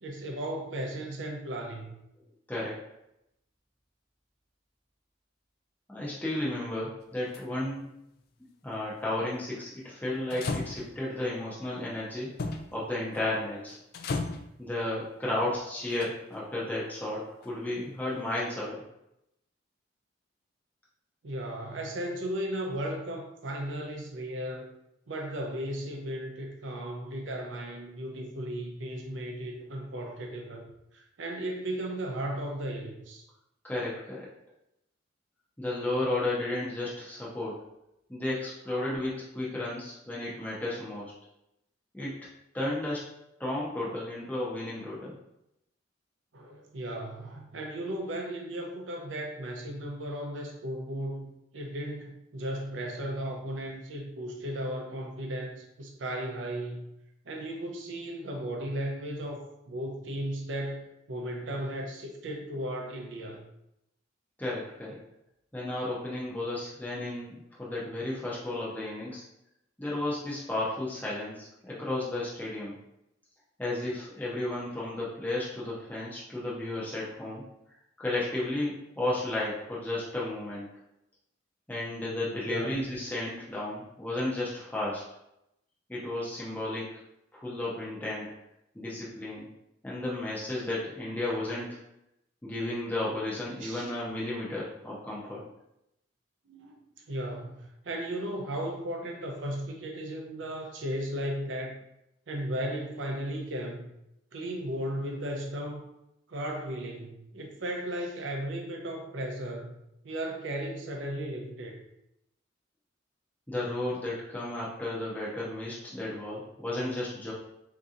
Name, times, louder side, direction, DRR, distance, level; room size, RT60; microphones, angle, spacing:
voice 1, 0.0-2.0 21.2-24.7 25.1-30.7 30.9-33.2 38.7-38.9 46.3-56.9 57.3-63.4 82.4-82.9 93.6-93.9 96.5-101.8 102.3-103.9 104.3-105.9 106.3-109.7 110.0-111.8, right 1 dB, 70° right, 1 dB, 0.6 m, -35 dB
voice 2, 2.5-2.8 5.9-7.8 8.6-12.3 12.7-13.8 14.6-18.8 33.6-34.3 35.6-37.6 38.1-41.1 41.9-42.2 42.5-43.0 43.4-45.2 64.4-65.0 65.5-69.2 69.8-72.8 73.6-77.5 78.0-80.7 81.7-85.0 85.9-87.0 87.3-88.3 88.7-89.5 89.8-91.8 92.4-95.4 113.5-117.3, left 1 dB, 10° left, -7 dB, 0.6 m, -33 dB
sound 1, 7.0-7.4 10.3-11.1 12.4-12.7 13.1-13.4 13.7-14.5 15.9-16.4 17.4-17.5, left 3 dB, 55° left, 0.3 m, -35 dB
3.8 x 2.7 x 2.4 m, 0.83 s
head